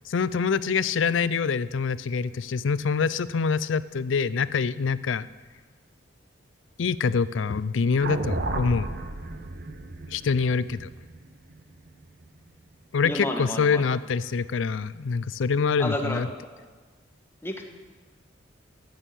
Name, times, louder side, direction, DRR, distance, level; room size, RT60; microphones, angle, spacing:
voice 1, 0.1-5.3 6.8-8.9 10.1-10.9 12.9-16.3, left 5 dB, 90° left, 17 dB, 0.5 m, -25 dB
sound 1, 8.0-12.3, right 2 dB, 55° right, 1.0 m, -33 dB
voice 2, 13.0-13.8 15.8-16.5 17.4-17.6, left 1 dB, 15° left, 3 dB, 1.4 m, -31 dB
14.5 x 6.5 x 9.0 m, 1.4 s
head